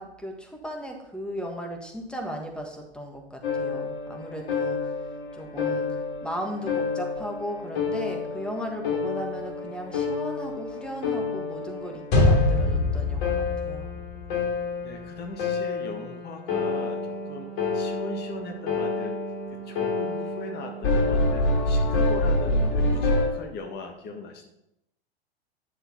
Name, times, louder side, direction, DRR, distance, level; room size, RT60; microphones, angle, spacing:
voice 1, 0.0-4.8 5.3-5.9 6.2-13.9, equal, 5° left, 3 dB, 1.6 m, -36 dB
sound 1, 3.4-23.3, left 3 dB, 55° left, 2.7 m, -27 dB
voice 2, 14.8-19.2 19.5-24.5, left 3 dB, 30° left, 5 dB, 1.6 m, -40 dB
10.0 x 6.5 x 4.5 m, 0.84 s
hypercardioid pair, 100°, 32 cm